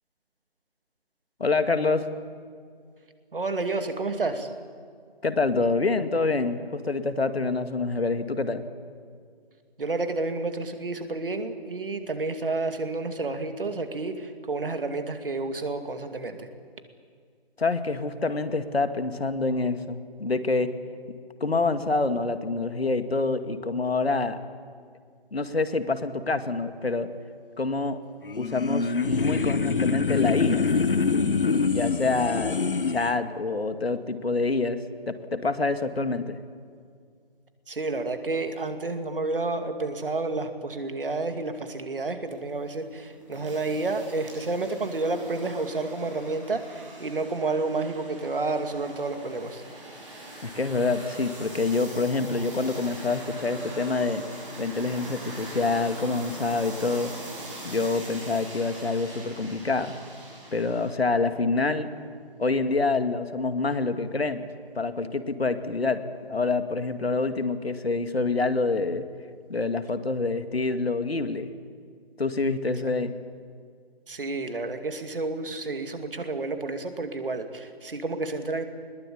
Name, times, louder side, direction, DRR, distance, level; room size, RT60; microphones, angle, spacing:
voice 1, 1.4-2.1 5.2-8.7 17.6-20.7 21.4-24.4 25.3-27.1 27.6-28.0 28.4-30.7 31.7-32.6 32.9-34.8 35.1-36.4 50.4-54.2 54.6-57.1 57.6-60.0 60.5-61.9 62.4-64.5 64.8-66.0 66.3-69.0 69.5-71.5 72.2-73.1, left 3 dB, 75° left, 10 dB, 2.1 m, -26 dB
voice 2, 3.3-4.5 9.8-16.5 37.7-49.6 74.1-78.6, right 3 dB, 60° right, 7 dB, 2.5 m, -30 dB
sound 1, 28.2-33.1, left 5 dB, 60° left, 1.1 m, -25 dB
sound 2, 42.3-60.9, right 1 dB, 30° right, 7.6 m, -42 dB
21.0 x 21.0 x 8.6 m, 2.1 s
figure-of-eight pair, 160°, 31 cm